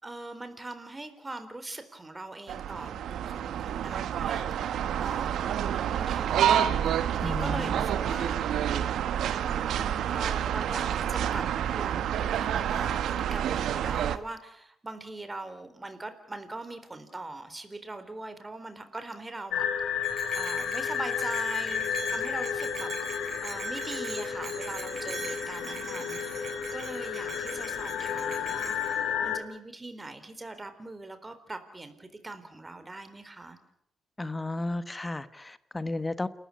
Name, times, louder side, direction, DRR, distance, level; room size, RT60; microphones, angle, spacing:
voice 1, 0.0-6.5 7.1-8.4 9.5-11.4 11.7-19.7 20.3-33.6, right 2 dB, 20° right, 3.9 m, -41 dB
sound 1, 2.5-14.2, right 9 dB, 80° right, 1.4 m, -28 dB
voice 2, 7.2-7.9 34.2-36.3, left 2 dB, 15° left, 1.3 m, -33 dB
sound 2, 19.5-29.4, left 8 dB, 80° left, 3.2 m, -32 dB
Bell, 20.0-29.0, right 3 dB, 45° right, 7.0 m, -41 dB
29.0 x 14.0 x 9.6 m
cardioid pair, 90°, 0 cm